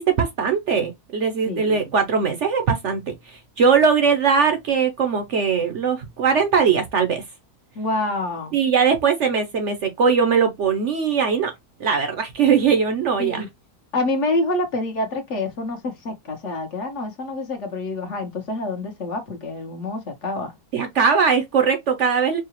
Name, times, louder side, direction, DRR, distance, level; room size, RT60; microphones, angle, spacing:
voice 1, 0.0-3.0 3.3-7.2 8.5-11.5 11.8-13.4 20.7-22.4, right 6 dB, 55° right, 0.9 m, -20 dB
voice 2, 1.5-1.9 7.7-8.6 13.2-13.5 13.9-20.5, left 2 dB, 55° left, 1.2 m, -27 dB
4.7 x 2.2 x 2.9 m
omnidirectional pair, 1.6 m